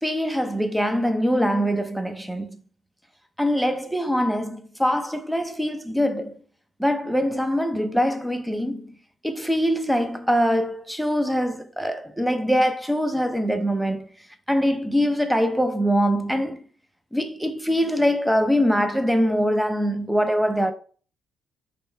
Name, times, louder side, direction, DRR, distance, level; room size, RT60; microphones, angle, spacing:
voice 1, 0.0-2.6 3.4-6.4 6.8-8.9 9.2-14.1 14.5-16.7 17.1-20.7, equal, ahead, 0.7 m, -23 dB
5.3 x 2.2 x 4.3 m
cardioid pair, 90°, 0 cm